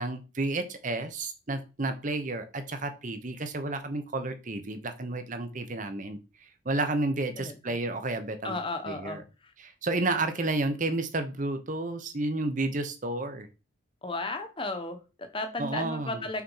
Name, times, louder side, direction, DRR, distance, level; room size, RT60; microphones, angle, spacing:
voice 1, 0.0-6.2 6.6-8.6 8.8-9.2 9.6-13.5 15.6-16.3, right 2 dB, 40° right, 9 dB, 0.9 m, -31 dB
voice 2, 7.4-7.7 8.4-9.5 14.0-16.4, left 2 dB, 25° left, 7 dB, 1.0 m, -35 dB
6.0 x 4.3 x 5.6 m, 0.31 s
head